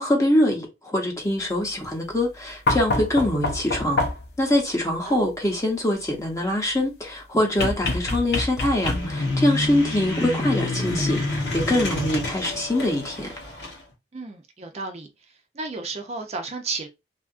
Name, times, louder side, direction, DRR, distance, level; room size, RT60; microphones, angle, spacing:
voice 1, 0.0-4.0 4.4-13.3, left 1 dB, 20° left, 0.8 m, -24 dB
sound 1, 2.7-4.4 7.6-9.3 10.9-11.0, left 2 dB, 65° left, 0.7 m, -26 dB
sound 2, 8.8-13.8, left 2 dB, 85° left, 1.0 m, -28 dB
voice 2, 14.1-15.1 15.5-16.9, right 3 dB, 35° right, 0.4 m, -32 dB
2.7 x 2.4 x 2.4 m
head